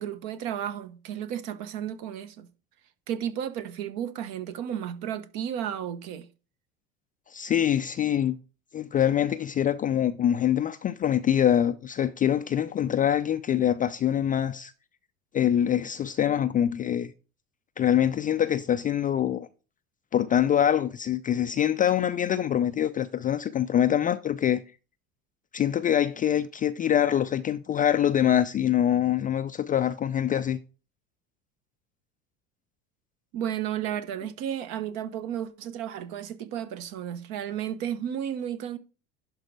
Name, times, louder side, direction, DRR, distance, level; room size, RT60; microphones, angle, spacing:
voice 1, 0.0-2.5 3.1-6.3 33.3-38.8, right 10 dB, 55° right, 1.0 m, -33 dB
voice 2, 7.3-8.4 8.7-14.7 15.3-17.1 17.8-19.5 20.1-24.6 25.5-30.6, left 10 dB, 20° left, 0.3 m, -24 dB
11.5 x 4.1 x 4.7 m
hypercardioid pair, 75°, 41 cm